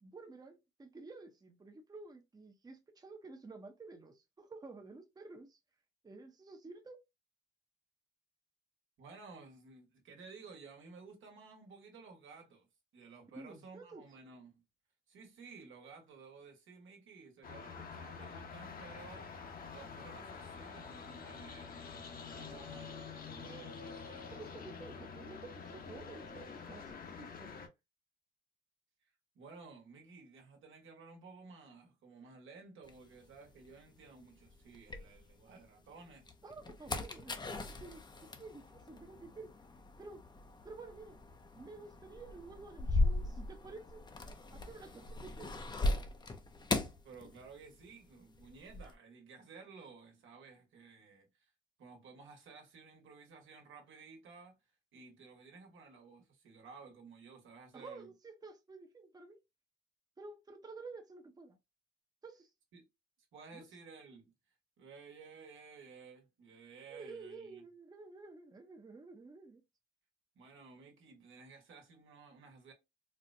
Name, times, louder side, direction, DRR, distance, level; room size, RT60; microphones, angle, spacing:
voice 1, 0.0-5.6 6.0-7.0 13.3-14.0 24.4-27.6 36.4-39.5 40.0-40.2 40.6-41.2 41.6-44.0 44.5-45.6 57.7-59.4 60.2-61.6 62.2-62.5 63.5-63.6 66.9-69.6, right 3 dB, 20° right, 0.7 m, -51 dB
voice 2, 9.0-12.7 12.9-14.6 15.1-21.8 22.3-24.3 29.3-36.3 47.0-51.5 51.8-54.6 54.9-58.1 62.7-62.9 63.3-64.3 64.8-67.6 70.3-72.7, right 4 dB, 80° right, 1.3 m, -55 dB
sound 1, 17.4-27.7, left 5 dB, 45° left, 0.9 m, -47 dB
sound 2, 32.9-35.6 36.1-47.9 48.1-48.9, left 2 dB, 20° left, 0.5 m, -38 dB
4.2 x 2.1 x 2.6 m
cardioid pair, 90°, 20 cm